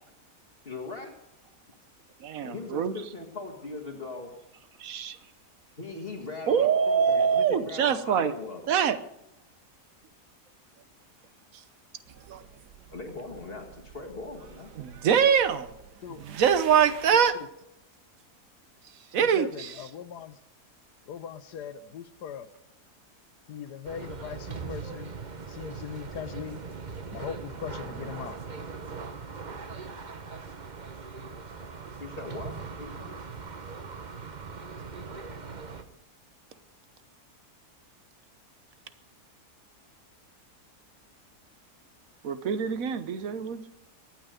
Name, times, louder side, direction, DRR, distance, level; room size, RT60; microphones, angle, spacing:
voice 1, 0.7-1.1 2.4-4.4 5.8-8.6 12.9-14.7 32.0-33.2, left 3 dB, 35° left, 1 dB, 1.9 m, -39 dB
voice 2, 2.2-3.0 4.8-5.2 6.5-8.3 8.7-9.0 11.5-11.6 12.3-12.4 14.8-15.8 16.1-17.4 18.8-19.9 42.2-43.7, right 7 dB, 60° right, 13 dB, 1.3 m, -24 dB
sound 1, 12.0-17.3, right 8 dB, 80° right, 1.6 m, -49 dB
voice 3, 19.2-20.4 21.1-22.5 23.5-25.1 25.4-26.6 27.1-28.4, left 8 dB, 80° left, 13 dB, 1.4 m, -40 dB
sound 2, 23.8-35.8, right 5 dB, 35° right, 0.9 m, -40 dB
24.0 x 9.1 x 5.1 m, 0.82 s
omnidirectional pair, 1.7 m